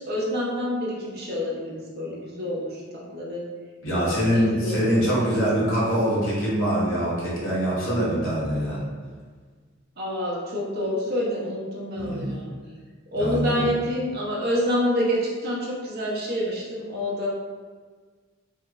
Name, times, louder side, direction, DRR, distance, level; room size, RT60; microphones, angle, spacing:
voice 1, 0.0-3.5 3.9-5.5 10.0-12.5 13.1-17.3, equal, 50° right, -4 dB, 0.8 m, -28 dB
voice 2, 3.8-8.8 12.0-12.3 13.2-13.6, equal, 70° left, -7 dB, 1.3 m, -24 dB
3.5 x 2.0 x 3.5 m, 1.5 s
head